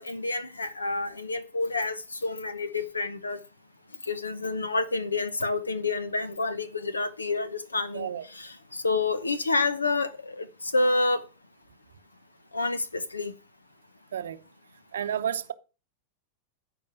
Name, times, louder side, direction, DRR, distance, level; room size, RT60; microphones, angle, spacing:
voice 1, 0.0-3.4 4.0-11.2 12.5-13.3, left 3 dB, 80° left, 0.9 m, -29 dB
voice 2, 7.9-8.3 14.1-14.4 14.9-15.5, right 9 dB, 65° right, 0.8 m, -31 dB
13.0 x 5.1 x 6.0 m
figure-of-eight pair, 90°, 0 cm